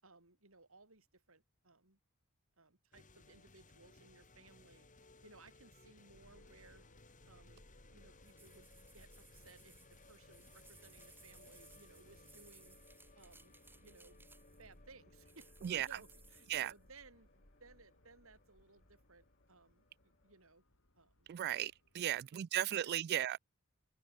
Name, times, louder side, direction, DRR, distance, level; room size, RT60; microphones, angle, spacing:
voice 1, 0.0-2.0 2.6-6.8 7.2-7.6 7.9-12.8 13.2-13.5 13.8-14.3 14.6-19.8 20.2-20.6 21.0-21.3 22.0-23.0, right 3 dB, 70° right, 5.3 m, -62 dB
sound 1, 2.9-20.5, left 2 dB, 35° left, 4.8 m, -64 dB
Subway metro underground, 6.1-22.3, left 1 dB, 65° left, 5.5 m, -66 dB
sound 2, 8.2-14.7 15.3-16.8, right 3 dB, 10° right, 4.0 m, -63 dB
voice 2, 21.3-23.4, right 11 dB, 50° right, 0.3 m, -36 dB
open air
head